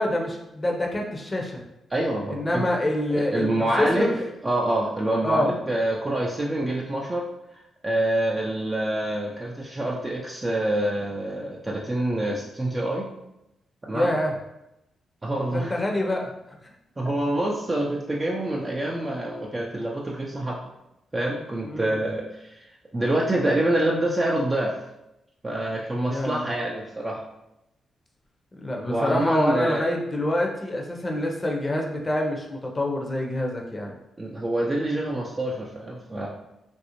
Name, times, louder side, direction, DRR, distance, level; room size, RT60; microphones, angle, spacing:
voice 1, 0.0-1.6 2.3-4.1 5.2-5.5 13.9-14.3 15.5-16.3 16.6-16.7 21.6-22.0 26.1-26.4 28.6-33.9, left 1 dB, 30° left, 1 dB, 0.6 m, -26 dB
voice 2, 1.9-2.6 3.2-7.2 7.8-13.1 13.8-14.1 15.2-15.7 17.0-20.6 21.1-24.8 25.4-27.2 28.9-29.9 34.2-36.3, right 1 dB, 30° right, -3 dB, 0.5 m, -26 dB
2.5 x 2.0 x 2.9 m, 0.86 s
supercardioid pair, 55°, 0 cm